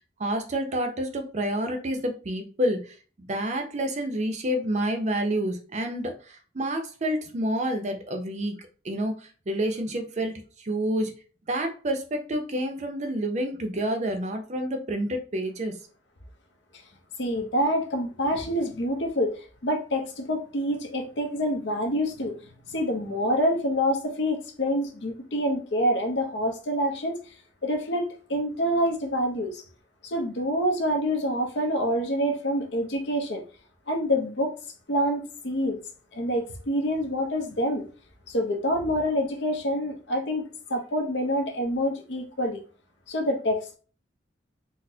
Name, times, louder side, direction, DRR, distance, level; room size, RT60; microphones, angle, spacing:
voice 1, 0.2-9.1 9.5-11.1 11.5-15.8, right 1 dB, 40° right, 5 dB, 0.5 m, -29 dB
voice 2, 17.2-19.3 19.6-22.4 22.7-27.2 27.6-29.6 30.0-33.4 33.9-34.5 34.9-35.8 36.1-37.8 38.3-40.4 40.7-42.6 43.1-43.7, equal, 75° left, 3 dB, 0.7 m, -26 dB
4.0 x 2.1 x 2.7 m, 0.39 s
head